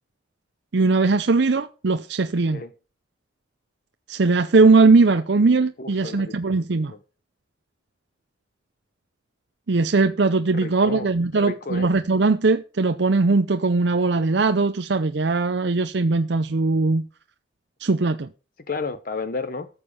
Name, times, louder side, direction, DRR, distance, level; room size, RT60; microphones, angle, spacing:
voice 1, 0.7-2.6 4.1-6.9 9.7-17.0 17.8-18.3, right 3 dB, 65° right, 0.6 m, -20 dB
voice 2, 5.8-6.6 6.9-7.0 10.5-11.1 11.4-11.9 18.7-19.7, left 3 dB, 50° left, 0.8 m, -32 dB
13.0 x 7.3 x 6.6 m
head